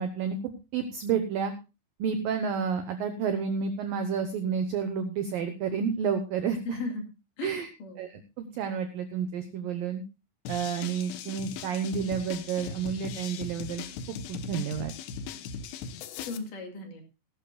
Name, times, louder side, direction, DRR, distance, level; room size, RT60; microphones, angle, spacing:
voice 1, 0.0-1.5 2.0-6.8 7.4-7.7 8.0-10.0 10.5-14.9, right 6 dB, 75° right, 8 dB, 2.0 m, -30 dB
voice 2, 6.6-7.0 7.4-8.0 16.2-17.0, left 3 dB, 55° left, 3 dB, 3.2 m, -36 dB
sound 1, 10.5-16.4, left 6 dB, 75° left, 2.8 m, -39 dB
19.0 x 12.0 x 2.3 m, 0.28 s
omnidirectional pair, 5.4 m